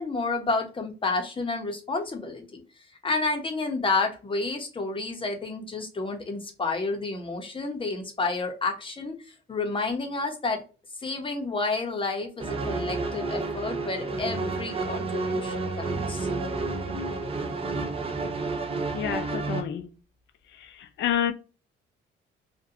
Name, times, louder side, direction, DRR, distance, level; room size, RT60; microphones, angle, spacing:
voice 1, 0.0-2.6 3.0-9.2 9.5-10.6 11.0-16.3, left 3 dB, 25° left, 0.7 m, -30 dB
sound 1, 12.4-19.6, right 3 dB, 30° right, 0.5 m, -30 dB
voice 2, 18.9-19.9 20.5-21.3, left 10 dB, 65° left, 0.4 m, -29 dB
2.5 x 2.2 x 2.6 m
cardioid pair, 90°, 20 cm